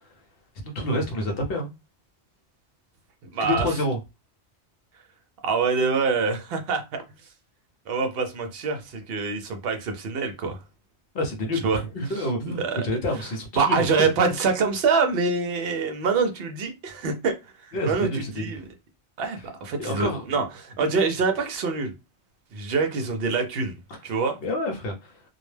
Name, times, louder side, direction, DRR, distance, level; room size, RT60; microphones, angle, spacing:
voice 1, 0.6-1.7 3.4-4.0 11.1-14.1 17.7-18.5 19.8-20.2 24.4-25.1, left 1 dB, 60° left, 0.8 m, -28 dB
voice 2, 3.3-3.7 5.4-7.0 7.9-10.6 11.6-11.8 12.1-12.9 13.1-17.3 17.6-18.6 19.2-21.9 22.5-24.4, right 4 dB, 65° right, 0.7 m, -25 dB
2.2 x 2.1 x 3.1 m
omnidirectional pair, 1.1 m